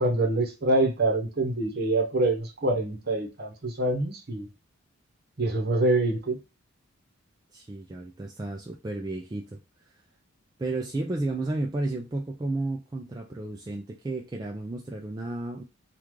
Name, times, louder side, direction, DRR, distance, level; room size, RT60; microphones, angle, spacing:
voice 1, 0.0-4.5 5.4-6.4, right 2 dB, 45° right, 0.9 m, -25 dB
voice 2, 7.5-9.6 10.6-15.6, right 2 dB, 20° right, 0.3 m, -32 dB
3.1 x 2.4 x 3.6 m
head